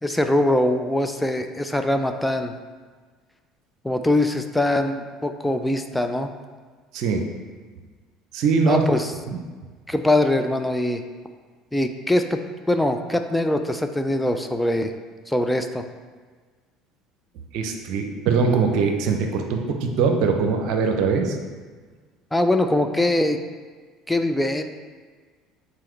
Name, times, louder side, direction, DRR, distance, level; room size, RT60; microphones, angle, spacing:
voice 1, 0.0-2.5 3.8-6.3 8.6-9.1 9.9-11.0 11.7-12.4 12.7-14.9 15.3-15.8 22.3-23.4 24.1-24.6, left 1 dB, 5° left, 6 dB, 0.5 m, -22 dB
voice 2, 6.9-7.3 8.3-8.8 9.3-9.4 17.5-21.4, right 5 dB, 60° right, 4 dB, 0.7 m, -22 dB
7.6 x 4.0 x 3.2 m, 1.5 s
figure-of-eight pair, 65°, 0 cm